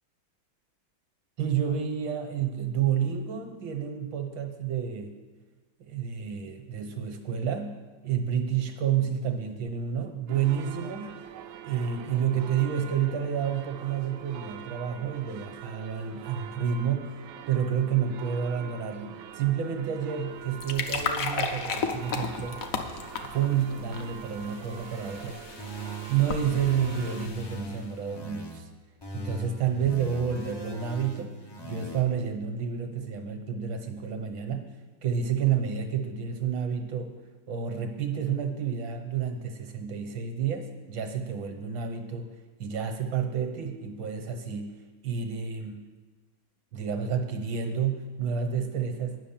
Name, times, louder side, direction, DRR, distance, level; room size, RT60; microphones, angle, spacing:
voice 1, 1.4-5.1 5.8-7.7 8.0-11.1 11.6-17.1 17.5-22.6 23.3-25.4 26.1-28.7 29.1-31.3 31.6-34.6 35.0-37.1 37.5-42.3 42.6-44.7 45.0-45.8 46.7-49.2, right 8 dB, 75° right, 5 dB, 1.8 m, -29 dB
sound 1, 10.3-27.3, right 9 dB, 90° right, 1.5 m, -44 dB
sound 2, 20.3-27.9, left 5 dB, 55° left, 1.0 m, -35 dB
sound 3, 25.6-28.6 29.0-32.0, equal, 30° left, 0.4 m, -40 dB
10.5 x 6.2 x 7.3 m, 1.3 s
omnidirectional pair, 2.2 m